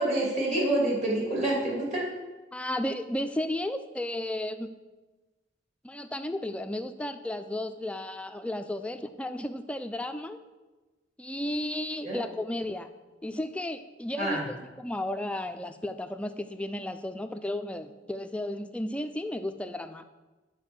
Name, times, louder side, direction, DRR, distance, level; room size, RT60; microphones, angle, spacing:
voice 1, 0.0-2.1 12.0-12.2 14.2-14.4, right 1 dB, 40° right, -4 dB, 2.6 m, -27 dB
voice 2, 2.5-4.7 5.8-10.4 11.2-12.9 13.2-20.0, left 1 dB, 5° left, 9 dB, 0.4 m, -33 dB
8.5 x 4.5 x 7.2 m, 1.2 s
head